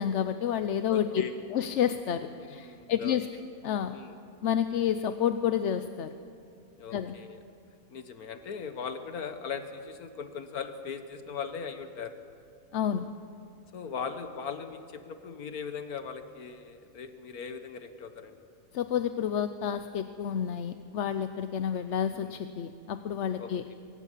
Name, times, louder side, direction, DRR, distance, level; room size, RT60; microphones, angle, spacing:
voice 1, 0.0-1.2 1.5-3.3 3.6-3.9 4.4-6.1 6.9-7.1 12.7-13.1 18.7-23.6, left 9 dB, 60° left, 10 dB, 0.9 m, -29 dB
voice 2, 0.8-1.3 2.4-3.2 3.9-4.1 6.8-7.4 7.9-12.2 13.7-18.4 22.1-22.3 23.4-23.7, left 6 dB, 80° left, 8 dB, 1.6 m, -39 dB
24.0 x 18.5 x 7.4 m, 2.6 s
omnidirectional pair, 1.5 m